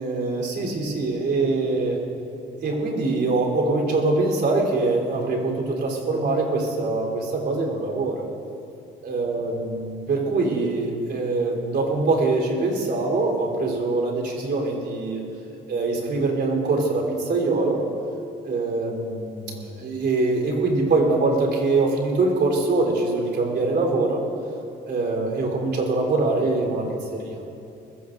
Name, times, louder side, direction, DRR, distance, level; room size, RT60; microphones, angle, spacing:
voice 1, 0.0-2.0 2.6-8.2 9.0-15.2 15.7-17.8 18.4-24.2 24.8-26.9 27.1-27.4, right 3 dB, 60° right, -1 dB, 3.8 m, -23 dB
21.5 x 16.0 x 2.7 m, 2.7 s
cardioid pair, 90°, 20 cm